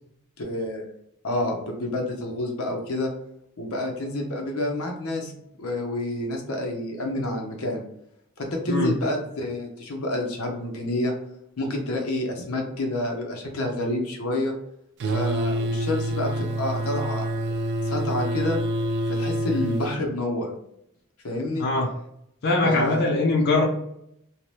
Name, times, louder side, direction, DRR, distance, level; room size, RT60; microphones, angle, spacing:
voice 1, 0.4-0.8 1.2-3.1 3.6-5.3 5.6-7.8 8.4-11.1 11.6-14.5 15.1-17.3 17.9-18.6 19.1-20.5 21.2-21.7 22.6-23.1, left 1 dB, 90° left, 1 dB, 0.7 m, -28 dB
sound 1, 15.0-19.9, right 1 dB, 55° right, 0.3 m, -27 dB
voice 2, 22.4-23.6, left 2 dB, 50° left, -1 dB, 0.5 m, -21 dB
2.8 x 2.1 x 3.2 m, 0.75 s
head